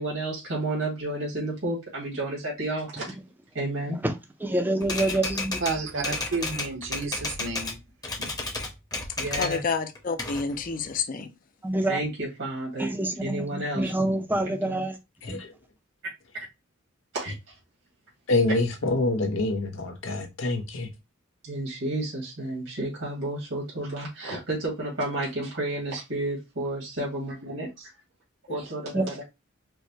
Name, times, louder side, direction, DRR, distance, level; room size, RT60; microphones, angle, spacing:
voice 1, 0.0-3.1 3.5-4.0 9.2-9.6 11.8-12.9 13.2-13.9 14.6-14.8 17.1-17.5 21.4-27.9 28.5-29.2, right 1 dB, 85° right, 1.7 m, -31 dB
voice 2, 4.4-5.6 11.6-12.0 12.8-15.0 15.3-15.4 28.9-29.0, right 1 dB, 10° right, 0.5 m, -26 dB
Typewriter, 4.8-7.8 8.0-9.6 10.0-11.0, left 2 dB, 20° left, 0.8 m, -32 dB
voice 3, 5.6-7.8 8.2-8.3, right 3 dB, 65° right, 0.8 m, -31 dB
voice 4, 9.4-11.3, left 4 dB, 40° left, 0.5 m, -29 dB
voice 5, 15.2-15.5 18.3-20.9, left 2 dB, 75° left, 0.8 m, -26 dB
4.6 x 2.2 x 2.7 m
head